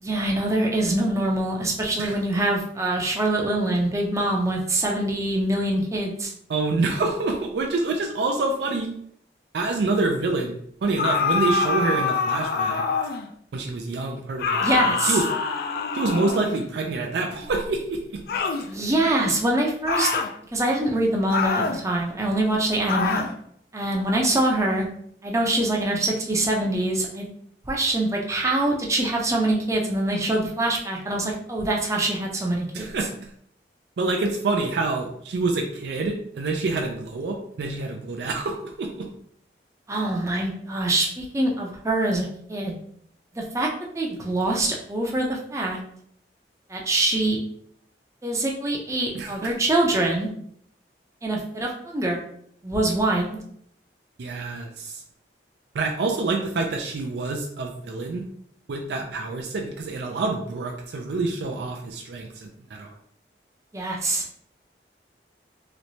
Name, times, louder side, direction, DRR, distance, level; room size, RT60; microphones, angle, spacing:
voice 1, 0.0-6.3 14.6-15.2 18.7-20.1 20.5-23.2 23.7-24.9 25.2-27.3 27.7-32.9 39.9-42.7 43.3-43.7 43.9-45.8 46.7-47.4 48.2-50.3 51.2-52.2 52.6-53.4 63.7-64.2, right 1 dB, 15° right, -1 dB, 0.5 m, -24 dB
voice 2, 6.5-8.9 9.5-12.8 13.5-15.2 15.9-18.2 32.7-33.3 34.0-39.1 49.1-49.5 54.2-55.0 55.7-58.2 58.7-62.9, right 3 dB, 70° right, 2 dB, 0.4 m, -27 dB
sound 1, 11.0-13.3 14.4-16.7 18.3-18.7 19.9-20.3 21.3-21.8 22.9-23.3, left 4 dB, 55° left, 0.3 m, -25 dB
3.1 x 3.0 x 2.7 m, 0.67 s
head